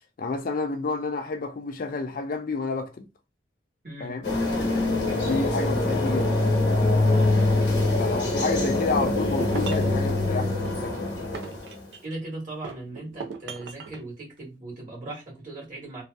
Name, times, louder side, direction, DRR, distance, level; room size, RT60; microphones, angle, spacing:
voice 1, 0.2-3.1 4.0-4.3 5.2-6.4 6.7-7.3 8.0-11.2, left 3 dB, 50° left, 0.4 m, -30 dB
sound 1, 4.2-11.8, left 2 dB, 70° left, 0.9 m, -24 dB
sound 2, 8.9-10.0 10.7-12.2 12.6-14.0, right 5 dB, 80° right, 0.4 m, -38 dB
voice 2, 12.0-16.0, right 2 dB, 50° right, 1.2 m, -38 dB
2.6 x 2.3 x 2.2 m
head